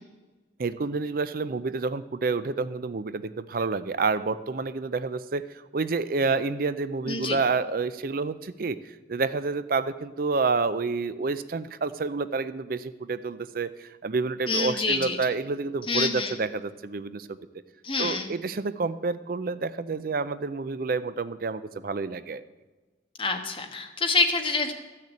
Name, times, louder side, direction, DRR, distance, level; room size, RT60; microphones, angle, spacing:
voice 1, 0.6-17.4 18.0-22.4, right 4 dB, 50° right, 13 dB, 0.5 m, -29 dB
voice 2, 7.1-7.4 14.5-15.2 15.9-16.4 17.8-18.3 23.2-24.7, left 4 dB, 30° left, 4 dB, 1.3 m, -26 dB
13.5 x 6.6 x 8.4 m, 1.3 s
head